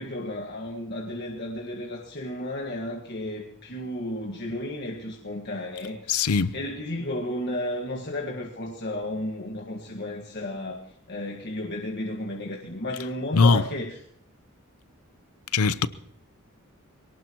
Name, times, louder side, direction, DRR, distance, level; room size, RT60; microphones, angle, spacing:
voice 1, 0.0-10.8 11.1-14.0, left 1 dB, 50° left, 1.7 m, -33 dB
voice 2, 6.1-6.6 13.3-13.6 15.5-15.9, left 4 dB, 90° left, 0.7 m, -20 dB
23.0 x 18.0 x 3.0 m
head